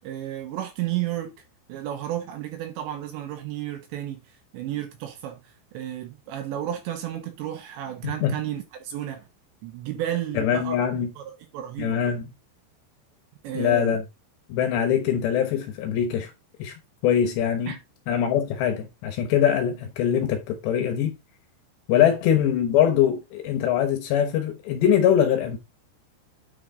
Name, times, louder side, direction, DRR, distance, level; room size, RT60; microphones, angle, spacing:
voice 1, 0.0-1.3 1.7-9.3 9.6-12.0 13.4-14.0 17.7-17.8 21.9-22.1, right 12 dB, 75° right, 2.8 m, -32 dB
voice 2, 10.4-11.1 11.8-12.3 13.5-14.0 14.5-16.3 16.6-16.7 17.0-17.8 18.1-21.1 21.9-25.6, left 9 dB, 70° left, 2.9 m, -22 dB
9.3 x 4.9 x 3.7 m
omnidirectional pair, 5.9 m